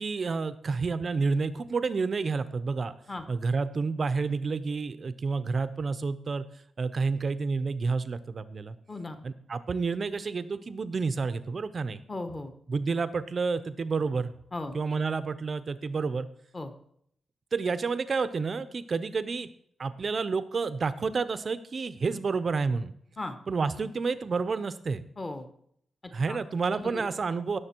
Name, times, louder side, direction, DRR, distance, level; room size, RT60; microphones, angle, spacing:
voice 1, 0.0-2.9 3.3-6.4 6.8-8.8 9.2-12.0 12.7-14.3 14.7-16.3 17.5-19.5 19.8-22.9 23.5-25.0 26.1-27.6, right 4 dB, 35° right, 13 dB, 0.6 m, -29 dB
voice 2, 8.9-9.2 12.1-12.5 14.5-14.7 16.5-16.7 23.2-23.4 25.2-25.5 26.3-26.4 26.8-27.0, left 2 dB, 20° left, 8 dB, 1.1 m, -36 dB
17.5 x 6.9 x 4.4 m, 0.67 s
wide cardioid pair, 180°, 0 cm